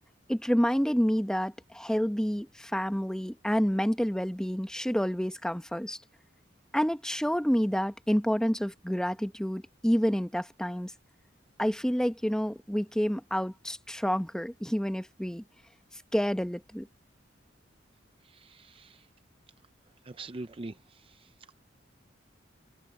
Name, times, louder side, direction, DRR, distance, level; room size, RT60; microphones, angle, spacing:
voice 1, 0.3-6.0 6.7-10.9 11.6-15.4 16.1-16.9, equal, 5° left, 1.0 m, -28 dB
voice 2, 18.3-19.0 20.1-20.7, right 2 dB, 30° right, 0.6 m, -42 dB
head